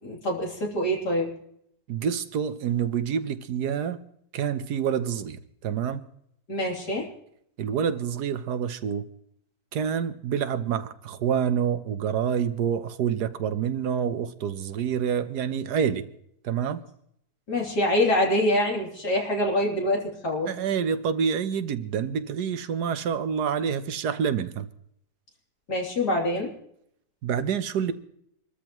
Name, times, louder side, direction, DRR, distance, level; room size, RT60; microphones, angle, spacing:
voice 1, 0.0-1.3 6.5-7.1 17.5-20.5 25.7-26.5, left 1 dB, 80° left, -2 dB, 3.9 m, -25 dB
voice 2, 1.9-4.0 4.3-6.0 7.6-9.1 9.7-16.0 16.4-16.8 20.5-24.7 27.2-27.9, right 7 dB, 75° right, 11 dB, 1.4 m, -27 dB
26.0 x 13.5 x 3.0 m, 0.72 s
omnidirectional pair, 1.7 m